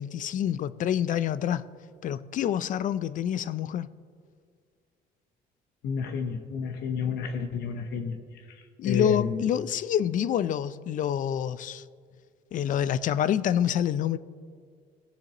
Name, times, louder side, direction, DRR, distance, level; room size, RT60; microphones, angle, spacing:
voice 1, 0.0-1.6 2.0-3.9 8.8-11.8 12.5-14.2, left 10 dB, 50° left, 0.4 m, -27 dB
voice 2, 5.8-8.2 8.8-9.4, left 5 dB, 75° left, 0.8 m, -30 dB
17.5 x 7.6 x 3.0 m
cardioid pair, 110°, 17 cm